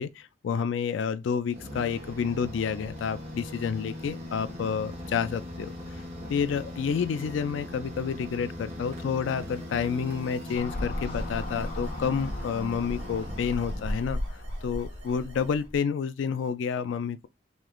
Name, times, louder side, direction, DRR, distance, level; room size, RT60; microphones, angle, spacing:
voice 1, 0.0-6.0 6.3-14.2 14.6-17.3, left 6 dB, 90° left, 0.3 m, -29 dB
sound 1, 1.5-14.3, left 1 dB, 35° right, 1.5 m, -40 dB
sound 2, 8.5-15.7, right 2 dB, 80° right, 1.3 m, -54 dB
sound 3, 10.5-15.8, left 1 dB, 40° left, 0.8 m, -35 dB
3.1 x 3.1 x 3.7 m
head